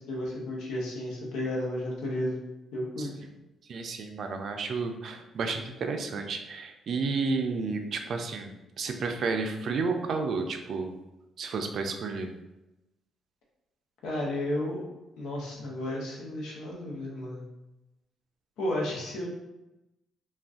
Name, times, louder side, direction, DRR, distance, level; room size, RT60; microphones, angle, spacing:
voice 1, 0.1-2.4 2.7-3.1 14.0-14.8 15.2-17.4 18.6-19.3, left 1 dB, 80° left, -3 dB, 0.8 m, -32 dB
voice 2, 3.7-10.9 11.4-12.3, right 4 dB, 60° right, 5 dB, 0.4 m, -31 dB
2.4 x 2.3 x 3.5 m, 0.96 s
cardioid pair, 90°, 0 cm